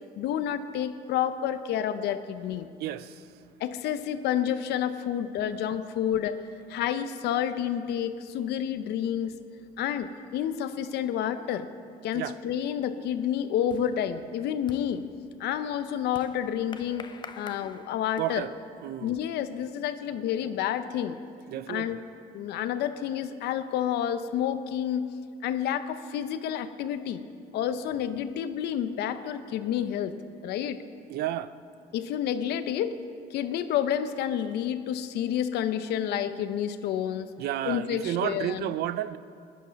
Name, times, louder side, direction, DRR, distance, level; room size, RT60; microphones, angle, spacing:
voice 1, 0.2-2.7 3.6-6.4 6.7-9.3 9.8-11.7 12.0-15.0 15.4-17.1 17.4-18.5 19.0-21.2 21.7-22.0 22.3-25.1 25.4-27.2 27.5-30.1 30.4-30.8 31.9-33.0 33.3-37.3 37.6-38.7, left 9 dB, 75° left, 11 dB, 0.7 m, -29 dB
voice 2, 2.8-3.3 12.1-12.4 18.2-18.5 18.8-19.2 21.5-22.0 31.1-31.5 37.4-39.2, right 12 dB, 70° right, 15 dB, 0.5 m, -31 dB
sound 1, 12.8-18.6, left 5 dB, 25° left, 0.6 m, -49 dB
15.0 x 11.0 x 5.2 m, 2.4 s
cardioid pair, 110°, 17 cm